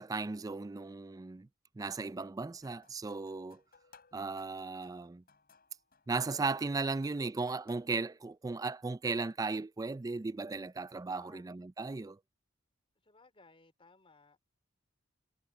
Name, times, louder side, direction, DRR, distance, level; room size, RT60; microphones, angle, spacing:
voice 1, 0.0-1.5 1.8-3.6 4.1-5.2 6.1-12.2, right 3 dB, 20° right, 0.3 m, -36 dB
sound 1, 2.6-8.0, left 5 dB, 50° left, 6.8 m, -65 dB
voice 2, 11.1-11.5 13.0-14.4, left 3 dB, 30° left, 3.5 m, -62 dB
head